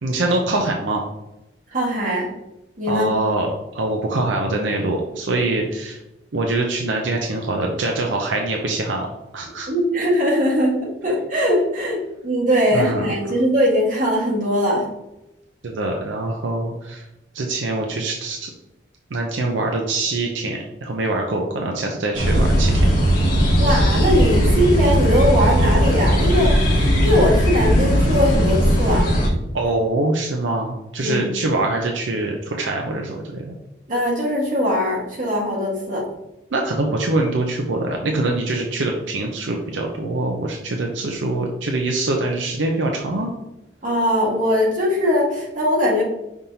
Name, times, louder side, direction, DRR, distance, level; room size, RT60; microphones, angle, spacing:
voice 1, 0.0-1.0 2.9-6.0 6.3-9.1 9.3-9.7 12.7-13.0 15.6-17.0 17.3-18.5 19.1-23.1 29.5-33.5 36.5-43.3, right 2 dB, 80° right, 1 dB, 0.6 m, -24 dB
voice 2, 1.7-2.3 2.8-3.1 9.7-14.9 23.6-29.1 29.6-29.7 31.0-31.3 33.9-36.0 43.8-46.0, equal, 45° right, -5 dB, 1.7 m, -20 dB
sound 1, 22.1-29.3, equal, 45° left, 1.4 m, -17 dB
5.4 x 3.5 x 2.8 m, 0.93 s
head